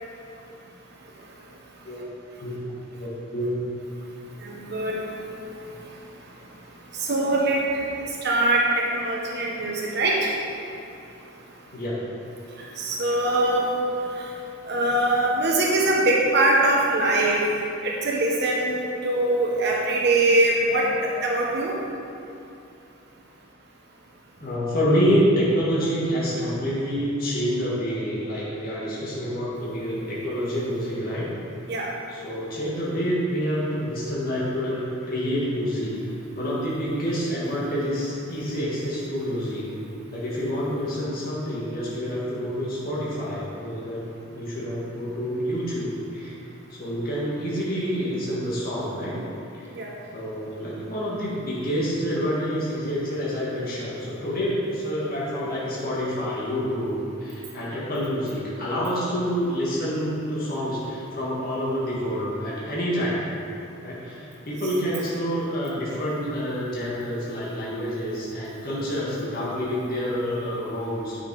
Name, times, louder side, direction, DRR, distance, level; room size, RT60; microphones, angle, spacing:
voice 1, 3.0-3.6 11.7-12.0 24.4-31.3 32.1-36.0 36.4-39.7 40.1-44.0 44.3-46.3 46.7-49.2 49.5-49.7 50.1-63.3 63.8-71.2, equal, 50° left, -7 dB, 1.9 m, -27 dB
voice 2, 4.4-5.0 6.9-7.8 8.2-8.6 8.9-10.3 12.8-13.7 14.7-17.4 17.8-20.9 21.2-21.8 31.7-31.9 49.8-49.9, right 2 dB, 60° right, -3 dB, 1.2 m, -22 dB
9.6 x 6.4 x 4.8 m, 2.7 s
head